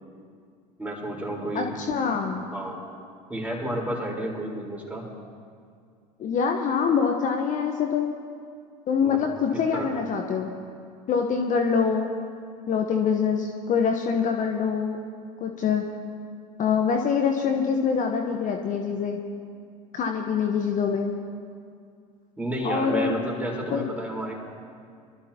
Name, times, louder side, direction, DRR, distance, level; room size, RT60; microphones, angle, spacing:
voice 1, 0.8-1.7 2.5-2.9 3.3-5.1 9.0-9.2 9.5-10.0 22.4-24.3, right 1 dB, 5° right, -3 dB, 4.4 m, -31 dB
voice 2, 1.5-2.4 6.2-8.1 8.9-10.5 11.1-12.1 12.7-15.0 15.4-15.8 16.6-19.2 19.9-21.1 22.6-23.2 23.7-23.8, left 6 dB, 40° left, 3 dB, 1.2 m, -25 dB
24.0 x 13.0 x 3.0 m, 2.3 s
hypercardioid pair, 75°, 20 cm